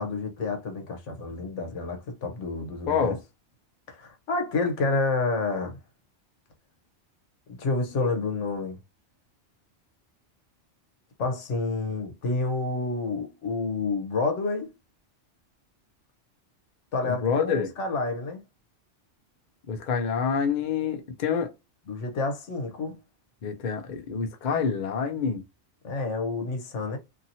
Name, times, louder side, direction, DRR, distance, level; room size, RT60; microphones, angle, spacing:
voice 1, 0.0-3.2 3.9-5.8 7.6-8.8 11.2-14.7 16.9-18.4 21.9-23.0 25.8-27.0, left 3 dB, 75° left, 1.2 m, -29 dB
voice 2, 2.9-3.2 17.1-17.7 19.7-21.5 23.4-25.4, left 6 dB, 50° left, 0.6 m, -27 dB
2.8 x 2.7 x 2.7 m
omnidirectional pair, 1.2 m